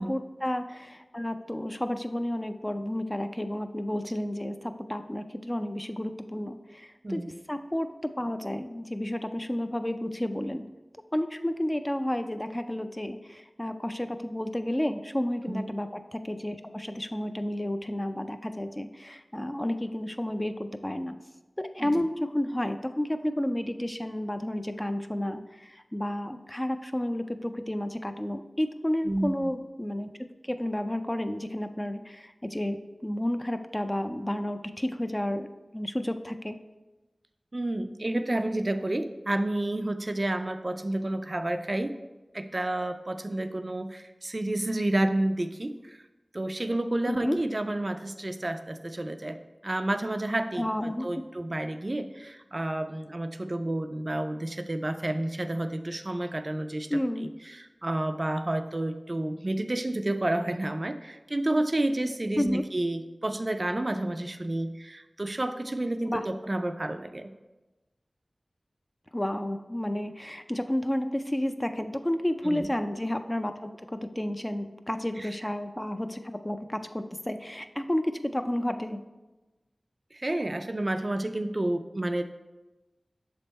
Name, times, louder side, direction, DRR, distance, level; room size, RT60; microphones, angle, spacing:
voice 1, 0.0-10.6 11.1-21.1 21.6-30.1 30.4-35.5 35.7-36.6 47.1-47.4 50.6-51.1 56.9-57.3 62.4-62.6 66.1-66.2 69.1-79.0, left 1 dB, 20° left, 8 dB, 0.4 m, -31 dB
voice 2, 29.0-29.5 37.5-42.0 42.3-46.0 46.3-49.4 49.6-67.3 72.4-72.7 75.2-75.3 80.1-82.2, right 1 dB, 45° right, 8 dB, 0.3 m, -30 dB
6.6 x 3.5 x 4.1 m, 1.1 s
wide cardioid pair, 45°, 0 cm